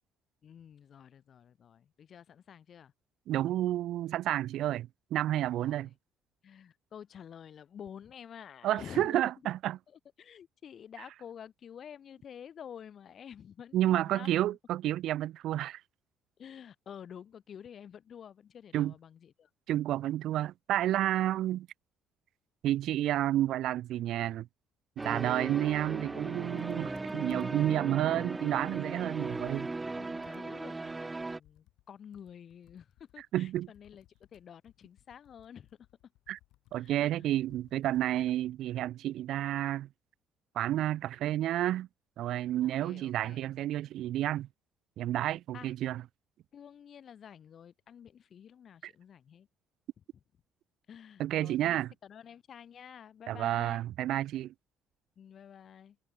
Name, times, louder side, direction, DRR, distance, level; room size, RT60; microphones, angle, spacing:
voice 1, 0.4-2.9 5.6-5.8 6.4-9.2 10.2-14.5 16.4-19.5 28.9-34.0 34.3-35.7 36.7-37.3 42.6-43.4 45.5-45.7 46.5-49.5 50.9-53.9 55.2-56.0, left 8 dB, 40° left, 3.6 m, -50 dB
voice 2, 3.3-5.9 8.6-9.8 13.7-15.8 18.7-18.9 19.7-21.7 22.6-24.5 25.0-29.7 33.3-33.7 36.3-36.4 36.7-39.9 40.5-41.9 42.2-44.5 45.0-46.0 48.8-48.9 51.2-51.9 53.3-54.5, right 13 dB, 60° right, 1.2 m, -30 dB
sound 1, 25.0-31.4, right 3 dB, 15° right, 0.8 m, -37 dB
Computer keyboard, 26.6-27.8 28.2-28.3 28.6-31.9 32.1-38.6, left 17 dB, 85° left, 6.2 m, -65 dB
cardioid pair, 155°, 0 cm